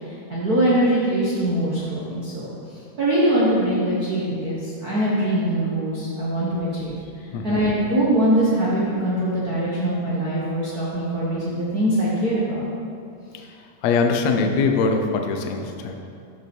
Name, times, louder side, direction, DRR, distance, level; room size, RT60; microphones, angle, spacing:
voice 1, 0.3-2.5 3.0-6.9 7.4-12.6, right 1 dB, 75° right, -7 dB, 0.8 m, -22 dB
voice 2, 13.8-16.0, left 4 dB, 75° left, 4 dB, 1.6 m, -22 dB
12.5 x 5.5 x 4.4 m, 2.4 s
omnidirectional pair, 3.8 m